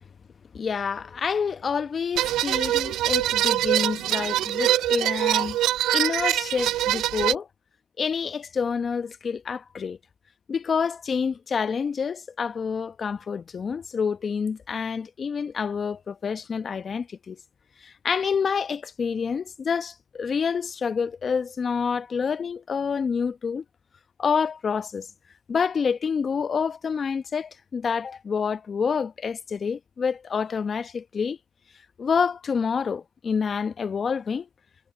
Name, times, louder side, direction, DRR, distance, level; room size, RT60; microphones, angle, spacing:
voice 1, 0.5-5.6 5.9-7.5 8.0-10.0 10.5-17.4 17.8-23.6 24.2-25.1 25.5-31.4 32.0-34.5, left 6 dB, 35° left, 1.0 m, -28 dB
sound 1, 2.2-7.3, right 14 dB, 60° right, 0.4 m, -24 dB
supercardioid pair, 80°, 0 cm